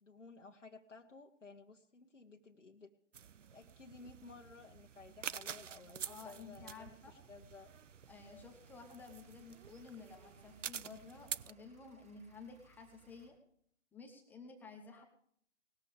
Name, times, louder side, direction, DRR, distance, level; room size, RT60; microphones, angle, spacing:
voice 1, 0.0-2.9 3.5-7.7 14.9-15.0, left 4 dB, 85° left, 1 dB, 1.4 m, -56 dB
sound 1, 3.1-11.5, right 8 dB, 80° right, 0.6 m, -48 dB
voice 2, 6.0-7.2 8.1-13.4 13.9-15.0, left 4 dB, 5° left, 3 dB, 0.7 m, -53 dB
sound 2, 6.0-13.3, right 4 dB, 15° right, 5.7 m, -68 dB
19.5 x 14.0 x 3.5 m, 0.68 s
figure-of-eight pair, 130°, 36 cm